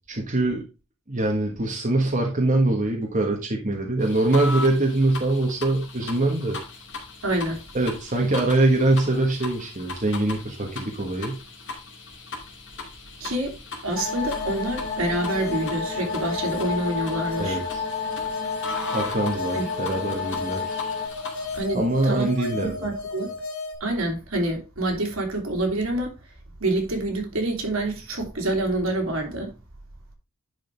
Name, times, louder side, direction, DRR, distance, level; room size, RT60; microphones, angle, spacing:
voice 1, 0.1-0.6 1.1-6.6 7.7-11.4 17.4-17.8 18.9-20.9 21.7-22.9, right 2 dB, 35° right, 1.4 m, -23 dB
sound 1, 4.0-21.6, left 3 dB, 55° left, 2.6 m, -38 dB
voice 2, 7.2-7.6 13.2-13.5 13.8-17.6 19.5-19.7 21.5-23.3 23.8-26.1 26.6-29.5, right 1 dB, 70° right, 2.8 m, -27 dB
sound 2, 13.9-21.1, left 5 dB, 10° left, 2.8 m, -32 dB
sound 3, 14.0-23.7, left 3 dB, 90° left, 2.8 m, -34 dB
10.5 x 5.1 x 3.4 m
head